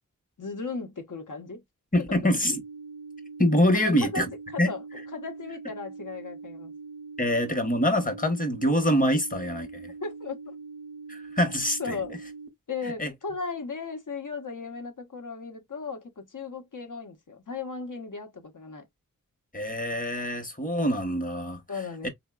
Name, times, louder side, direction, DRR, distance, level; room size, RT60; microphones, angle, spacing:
voice 1, 0.4-1.6 3.7-4.2 4.5-4.8 5.1-6.7 10.0-10.5 11.8-12.1 12.7-18.9 21.7-22.1, left 4 dB, 70° left, 0.8 m, -36 dB
voice 2, 1.9-2.6 3.4-4.3 4.6-4.7 7.2-9.9 11.1-12.0 13.0-13.1 19.5-21.6 22.0-22.1, equal, 25° left, 0.9 m, -25 dB
sound 1, 2.5-12.5, right 4 dB, 85° right, 0.6 m, -43 dB
3.8 x 2.1 x 2.2 m
wide cardioid pair, 55°, 33 cm